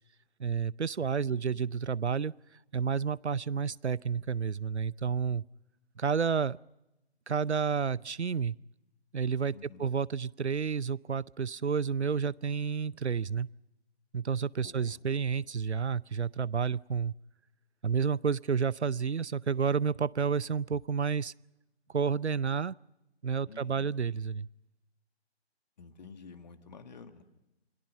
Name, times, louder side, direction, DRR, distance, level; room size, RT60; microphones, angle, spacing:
voice 1, 0.4-2.3 2.7-5.4 6.0-6.6 7.3-8.6 9.1-13.5 14.1-17.1 17.8-21.3 21.9-22.8 23.2-24.5, right 6 dB, 85° right, 23 dB, 0.7 m, -30 dB
voice 2, 1.3-1.6 9.5-9.9 14.6-15.0 23.5-23.9 25.8-27.2, left 5 dB, 40° left, 8 dB, 1.9 m, -50 dB
28.5 x 20.5 x 5.6 m, 0.94 s
figure-of-eight pair, 145°, 33 cm